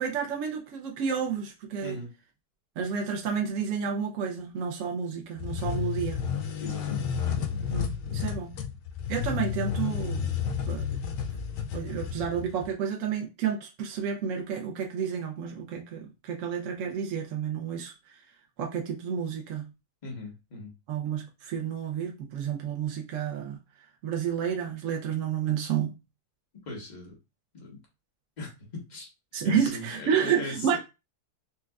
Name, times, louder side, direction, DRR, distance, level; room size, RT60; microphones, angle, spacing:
voice 1, 0.0-2.0 2.8-6.2 7.7-8.5 9.1-10.3 10.7-10.9 11.7-17.9 18.6-19.7 20.9-23.6 24.0-25.9 29.3-30.8, right 7 dB, 65° right, 0.8 m, -30 dB
voice 2, 1.8-2.1 6.6-7.7 20.0-20.7 26.6-27.2 27.5-27.8 28.4-29.1 29.4-30.8, left 2 dB, 30° left, 1.1 m, -39 dB
sound 1, 5.4-12.7, left 7 dB, 85° left, 1.2 m, -31 dB
4.4 x 2.2 x 2.3 m
omnidirectional pair, 1.8 m